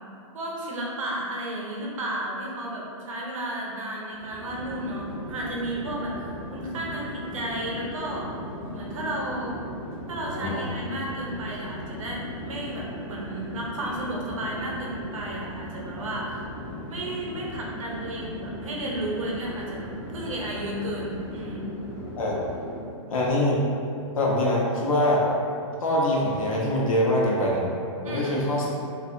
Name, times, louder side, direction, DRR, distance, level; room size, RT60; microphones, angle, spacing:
voice 1, 0.3-8.3 8.7-9.6 10.1-16.5 16.9-21.7 28.0-28.4, right 1 dB, 75° right, -3 dB, 0.7 m, -33 dB
Chatter / Fixed-wing aircraft airplane, 4.1-23.0, equal, 30° left, 0.4 m, -37 dB
voice 2, 10.3-10.6 22.2-22.4 23.1-23.6 24.2-25.2 25.8-27.6 28.0-28.7, left 1 dB, 85° left, -3 dB, 0.7 m, -23 dB
2.4 x 2.4 x 2.6 m, 2.5 s
hypercardioid pair, 175°, 17 cm